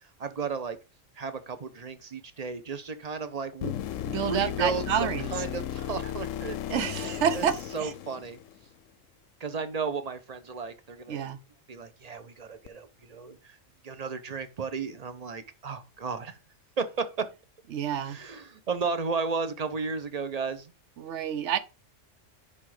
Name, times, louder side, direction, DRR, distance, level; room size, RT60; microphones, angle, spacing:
voice 1, 0.2-0.8 1.2-3.7 4.1-6.6 6.9-7.5 7.7-8.4 9.4-11.2 11.7-13.6 13.8-16.4 16.8-17.3 18.0-20.7, right 5 dB, 35° right, 0.8 m, -34 dB
sound 1, 3.6-8.7 12.7-12.8, left 11 dB, 85° left, 1.0 m, -35 dB
voice 2, 4.0-5.3 6.7-7.9 11.1-11.4 17.7-18.2 21.0-21.6, right 8 dB, 65° right, 1.0 m, -29 dB
10.5 x 3.7 x 4.8 m
omnidirectional pair, 1.3 m